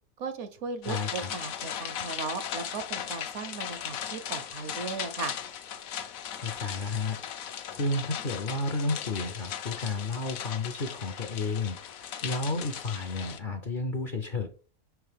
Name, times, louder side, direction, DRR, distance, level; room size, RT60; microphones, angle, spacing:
voice 1, 0.2-5.3, right 4 dB, 65° right, 10 dB, 0.9 m, -37 dB
sound 1, 0.8-13.4, left 9 dB, 75° left, 1.1 m, -38 dB
voice 2, 0.9-1.3 6.4-14.5, left 3 dB, 50° left, 6 dB, 0.6 m, -32 dB
6.0 x 4.6 x 3.4 m, 0.37 s
omnidirectional pair, 1.5 m